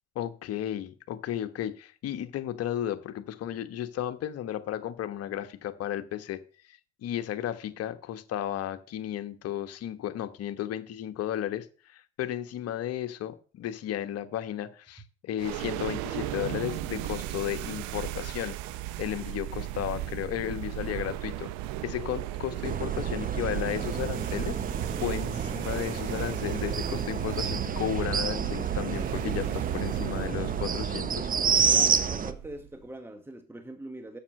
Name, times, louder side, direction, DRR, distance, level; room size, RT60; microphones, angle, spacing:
voice 1, 0.1-6.4 6.7-18.6 19.0-21.5 21.8-24.6 25.0-31.3, left 11 dB, 50° left, 1.2 m, -34 dB
sound 1, 15.4-32.8, right 14 dB, 65° right, 0.7 m, -35 dB
sound 2, 22.6-32.3, right 6 dB, 25° right, 0.8 m, -30 dB
voice 2, 25.0-25.7 31.7-34.2, right 1 dB, 5° right, 1.2 m, -43 dB
7.3 x 6.8 x 6.5 m
hypercardioid pair, 70°, 31 cm